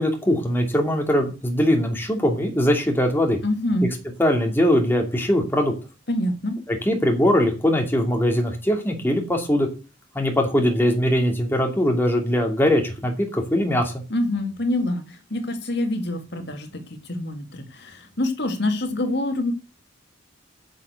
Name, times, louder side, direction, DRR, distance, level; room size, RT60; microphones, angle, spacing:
voice 1, 0.0-3.4 4.2-5.7 6.7-9.7 10.1-14.0, equal, 10° left, 2 dB, 2.6 m, -21 dB
voice 2, 3.4-3.9 6.1-6.6 14.1-19.5, left 1 dB, 60° left, 6 dB, 2.0 m, -26 dB
10.5 x 6.5 x 8.1 m, 0.32 s
head